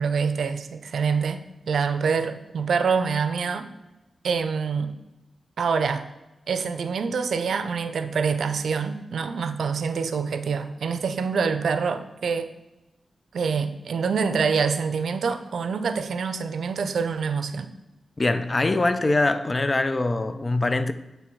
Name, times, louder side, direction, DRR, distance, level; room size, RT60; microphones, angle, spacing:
voice 1, 0.0-3.7 4.2-4.9 5.6-6.0 6.5-12.5 13.3-17.7, right 5 dB, 85° right, 0.4 m, -26 dB
voice 2, 18.2-20.9, left 2 dB, 35° left, 0.4 m, -23 dB
8.4 x 3.4 x 4.5 m
cardioid pair, 60°, 0 cm